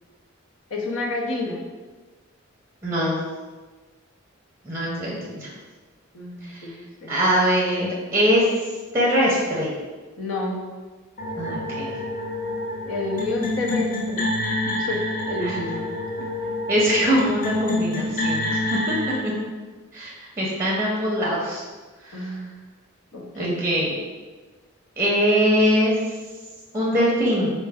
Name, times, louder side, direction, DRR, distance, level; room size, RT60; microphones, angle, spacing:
voice 1, 0.7-1.6 6.1-7.2 10.2-10.7 12.9-14.3 14.7-15.9 16.2-16.3 22.1-22.5 23.1-23.6, left 2 dB, 85° left, -1 dB, 0.7 m, -29 dB
voice 2, 2.8-3.2 4.6-5.5 6.5-6.7 7.1-8.5 8.9-9.7 11.4-11.9 15.4-15.5 16.7-19.3 19.9-21.6 22.1-22.2 23.3-23.9 25.0-26.0 26.7-27.5, equal, 15° right, -4 dB, 0.6 m, -22 dB
sound 1, 11.2-19.2, left 1 dB, 40° left, 0.6 m, -27 dB
4.3 x 2.1 x 3.4 m, 1.3 s
head